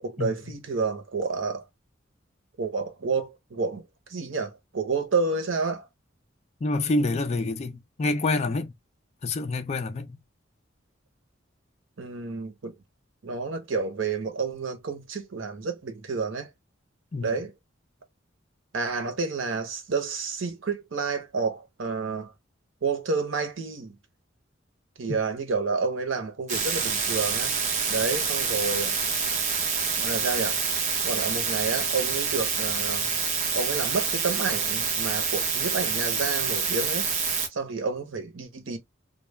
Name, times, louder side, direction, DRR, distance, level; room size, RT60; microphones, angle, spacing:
voice 1, 0.0-1.7 2.6-3.8 4.1-5.9 12.0-12.7 13.2-16.5 17.2-17.5 18.7-22.3 22.8-24.0 25.0-27.6 27.9-29.0 30.0-30.6 31.0-33.2 33.5-37.1 37.5-38.8, right 4 dB, 75° right, 0.7 m, -30 dB
voice 2, 6.6-8.7 9.2-10.2 17.1-17.3 25.1-25.2, left 2 dB, 35° left, 0.4 m, -27 dB
sound 1, 26.5-37.5, right 5 dB, 40° right, 0.7 m, -27 dB
2.3 x 2.0 x 3.0 m
head